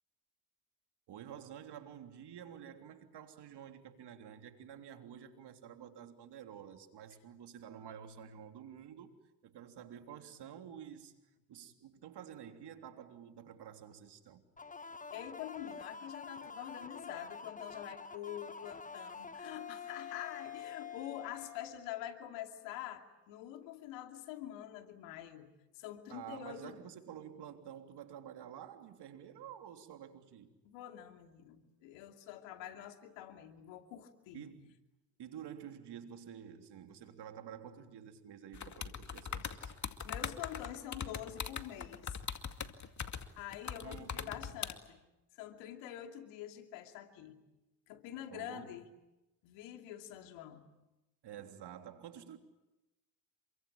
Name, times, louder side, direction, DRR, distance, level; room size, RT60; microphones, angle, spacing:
voice 1, 1.1-9.1 9.4-11.1 11.5-14.4 26.1-30.5 34.3-34.8 35.2-39.7 43.8-44.6 48.3-48.7 51.2-52.4, right 9 dB, 65° right, 3.4 m, -50 dB
sound 1, 14.6-22.1, left 5 dB, 20° left, 1.3 m, -47 dB
voice 2, 15.1-25.5 25.7-26.8 30.6-34.5 40.0-42.2 43.4-45.0 45.4-47.4 47.9-48.9 49.4-50.6, left 12 dB, 85° left, 2.7 m, -46 dB
sound 2, 38.5-44.7, left 6 dB, 40° left, 2.3 m, -41 dB
28.0 x 24.0 x 8.7 m
supercardioid pair, 70°, 44 cm